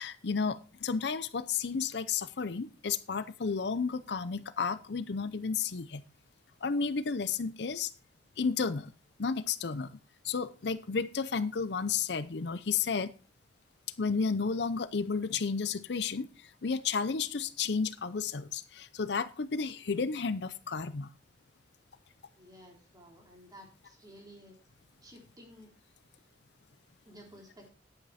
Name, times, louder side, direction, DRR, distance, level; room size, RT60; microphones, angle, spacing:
voice 1, 0.0-6.0 6.6-7.9 8.4-8.9 9.2-10.0 10.2-13.1 14.0-21.1, left 5 dB, 65° left, 14 dB, 0.6 m, -32 dB
voice 2, 22.4-24.6 25.0-25.7 26.2-26.3 27.1-27.7, equal, 20° right, 0 dB, 3.5 m, -54 dB
10.0 x 8.9 x 4.2 m, 0.35 s
head